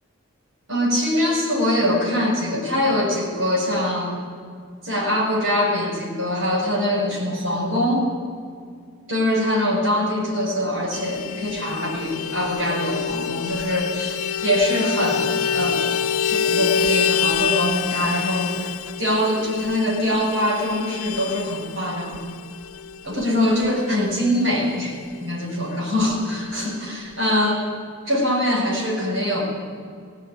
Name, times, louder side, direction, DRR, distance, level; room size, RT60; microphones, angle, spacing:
voice 1, 0.7-4.2 4.8-8.1 9.1-16.0 16.3-18.7 19.0-22.2 23.0-24.9 25.2-27.7 28.0-29.4, left 1 dB, 65° right, -3 dB, 6.7 m, -23 dB
Vehicle horn car horn honking, 10.9-24.8 25.1-25.2 25.5-25.7 26.0-26.7, left 7 dB, 90° left, 0.6 m, -27 dB
19.0 x 17.0 x 9.7 m, 2.2 s
head